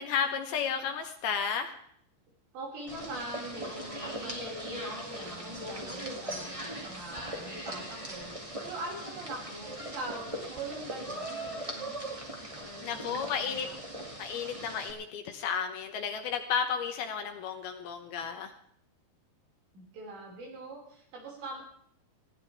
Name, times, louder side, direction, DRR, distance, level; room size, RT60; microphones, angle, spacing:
voice 1, 0.0-1.7 12.8-13.7 14.2-18.5, left 7 dB, 70° left, 6 dB, 2.6 m, -33 dB
voice 2, 2.5-8.4 8.6-12.0 12.5-13.8 19.7-21.6, right 2 dB, 75° right, -2 dB, 7.4 m, -43 dB
sound 1, 2.9-14.9, right 1 dB, 20° right, 0.8 m, -40 dB
20.0 x 16.5 x 3.5 m, 0.66 s
omnidirectional pair, 5.1 m